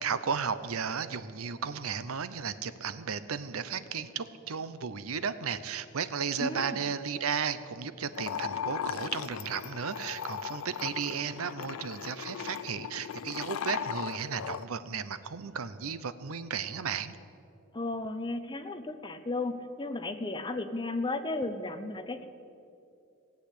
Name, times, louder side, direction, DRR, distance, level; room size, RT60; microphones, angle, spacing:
voice 1, 0.0-17.2, right 6 dB, 90° right, 13 dB, 0.7 m, -34 dB
voice 2, 6.4-6.8 17.7-22.3, left 2 dB, 20° left, 9 dB, 0.8 m, -34 dB
sound 1, 8.1-14.6, left 8 dB, 80° left, 0.4 m, -37 dB
17.5 x 8.3 x 8.4 m, 2.6 s
head